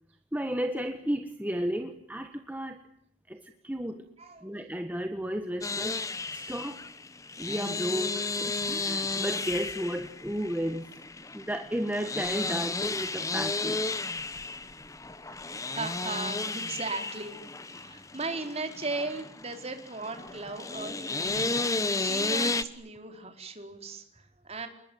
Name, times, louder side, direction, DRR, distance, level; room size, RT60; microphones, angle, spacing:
voice 1, 0.3-2.8 3.3-4.1 4.4-6.0 6.3-6.8 7.4-10.9 11.3-14.0, equal, 10° right, 6 dB, 1.5 m, -33 dB
voice 2, 4.2-4.5 6.3-6.7 15.7-21.6 22.0-24.7, right 3 dB, 30° right, 5 dB, 4.5 m, -37 dB
sound 1, 5.6-22.6, left 3 dB, 15° left, 1.2 m, -33 dB
29.5 x 21.0 x 9.4 m, 0.70 s
head